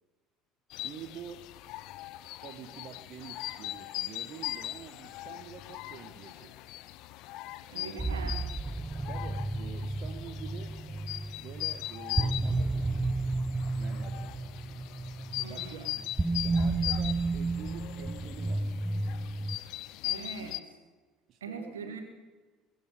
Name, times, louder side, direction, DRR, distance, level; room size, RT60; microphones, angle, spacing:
sound 1, 0.7-20.6, left 16 dB, 60° left, 0.5 m, -40 dB
voice 1, 0.8-1.5 2.4-6.6 7.7-8.2 9.1-10.8 11.4-13.1 13.8-14.4 15.5-15.9 16.4-18.7 20.4-20.6 21.3-22.0, right 8 dB, 50° right, 6 dB, 1.2 m, -47 dB
voice 2, 7.7-8.4 15.4-16.0 20.0-20.6 21.4-22.0, right 4 dB, 85° right, 5 dB, 1.9 m, -41 dB
sound 2, 8.0-19.6, right 2 dB, 15° right, 0.8 m, -32 dB
22.0 x 10.0 x 5.3 m, 1.4 s
hypercardioid pair, 65°, 0 cm